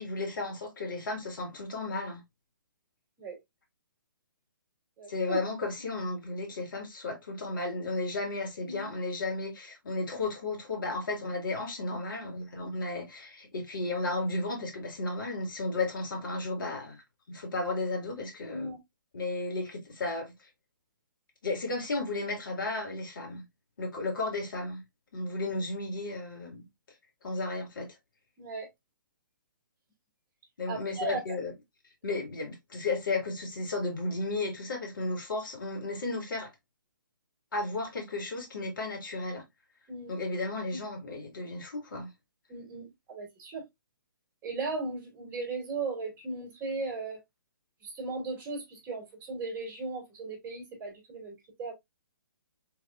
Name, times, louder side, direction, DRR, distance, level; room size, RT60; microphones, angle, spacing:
voice 1, 0.0-2.2 5.1-17.0 17.3-18.7 19.1-20.5 21.4-23.4 23.8-24.8 25.1-26.6 27.2-27.9 30.6-31.5 32.0-36.5 37.5-39.4 40.1-42.1, left 2 dB, 70° left, 2.1 m, -34 dB
voice 2, 5.0-5.4 8.7-8.9 18.5-18.8 28.4-28.7 30.7-31.2 39.9-40.1 40.7-40.8 42.5-43.6 44.4-47.2 47.8-51.7, right 3 dB, 15° right, 2.4 m, -37 dB
4.2 x 3.5 x 2.4 m
hypercardioid pair, 145°, 11 cm